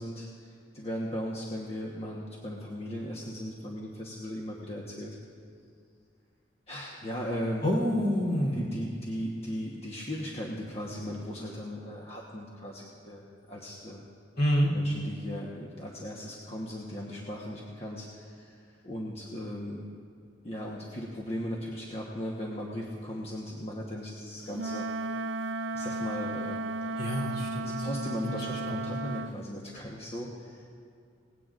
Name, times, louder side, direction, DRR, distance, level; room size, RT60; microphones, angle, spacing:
voice 1, 0.0-5.2 6.7-7.7 8.5-14.1 14.7-18.6 18.8-19.8 20.4-24.9 25.7-26.6 27.3-30.7, equal, 35° left, -3 dB, 1.1 m, -37 dB
voice 2, 7.6-8.6 14.4-14.7 27.0-27.9 28.2-28.4 28.7-29.0, equal, 60° left, -4 dB, 3.3 m, -28 dB
Wind instrument woodwind instrument, 24.5-29.4, right 2 dB, 85° right, 0.4 m, -34 dB
19.0 x 16.5 x 2.5 m, 2.3 s
head